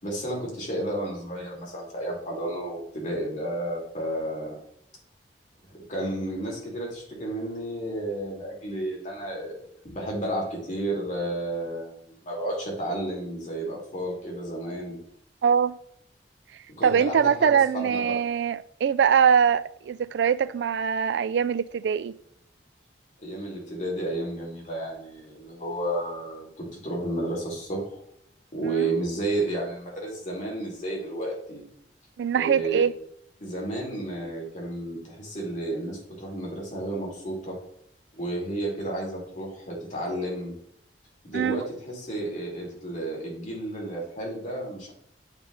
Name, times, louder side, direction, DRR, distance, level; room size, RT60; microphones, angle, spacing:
voice 1, 0.0-4.6 5.9-15.0 16.8-18.2 23.2-28.0 28.5-31.6 32.3-32.8 33.4-37.6 38.1-40.5 41.2-44.9, right 1 dB, 45° left, 2.6 m, -32 dB
voice 2, 15.4-15.8 16.8-22.1 28.6-28.9 32.2-32.9 41.3-41.6, right 7 dB, 75° right, 0.3 m, -23 dB
8.8 x 3.5 x 3.9 m
head